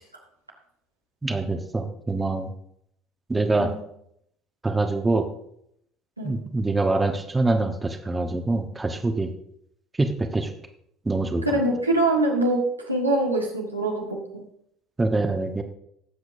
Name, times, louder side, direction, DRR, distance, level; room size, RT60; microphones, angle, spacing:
voice 1, 1.2-2.5 3.3-3.7 4.6-5.3 6.2-9.3 10.0-10.5 11.0-11.6 15.0-15.6, right 2 dB, 15° right, 6 dB, 1.2 m, -24 dB
voice 2, 11.4-14.4, right 2 dB, 90° right, -1 dB, 1.7 m, -24 dB
19.5 x 7.8 x 2.7 m, 0.73 s
figure-of-eight pair, 60°, 0 cm